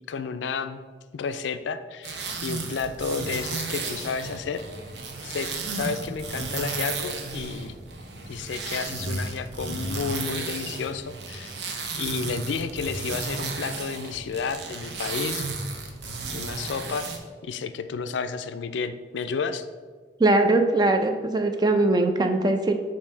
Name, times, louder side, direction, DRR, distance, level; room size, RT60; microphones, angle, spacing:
voice 1, 0.1-0.8 1.1-4.6 5.2-7.8 8.3-11.5 12.0-15.5 16.3-17.1 17.4-19.7, left 5 dB, 90° left, 11 dB, 0.4 m, -31 dB
sound 1, 2.0-17.2, right 3 dB, 75° right, 0.8 m, -33 dB
voice 2, 20.2-22.7, right 2 dB, 25° right, 6 dB, 0.4 m, -21 dB
7.0 x 2.7 x 5.4 m, 1.5 s
head